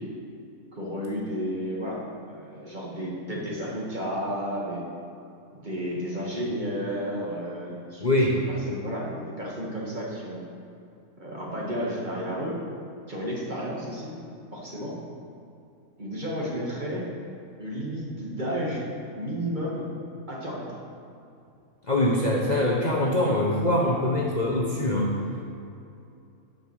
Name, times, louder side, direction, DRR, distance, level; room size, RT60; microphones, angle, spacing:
voice 1, 0.7-4.8 5.5-10.4 11.2-12.6 13.1-14.1 14.5-15.0 16.0-17.1 17.6-18.9 19.1-19.9 20.3-20.8, equal, 30° right, -4 dB, 1.9 m, -32 dB
voice 2, 8.0-8.4 21.9-25.1, left 1 dB, 35° left, -4 dB, 0.9 m, -23 dB
10.5 x 5.4 x 6.4 m, 2.7 s
omnidirectional pair, 1.5 m